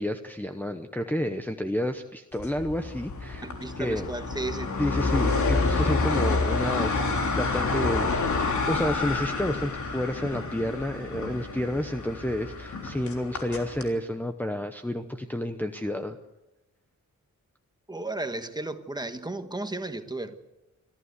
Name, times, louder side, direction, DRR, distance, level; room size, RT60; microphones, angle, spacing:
voice 1, 0.0-3.5 3.8-4.1 4.8-7.1 7.4-8.3 8.7-16.2, left 1 dB, 5° left, 4 dB, 0.9 m, -30 dB
sound 1, 2.4-13.9, left 3 dB, 70° left, 3.5 m, -28 dB
voice 2, 3.4-4.7 17.9-20.4, right 2 dB, 15° right, 8 dB, 1.3 m, -34 dB
25.5 x 14.5 x 8.2 m, 0.98 s
wide cardioid pair, 155°, 31 cm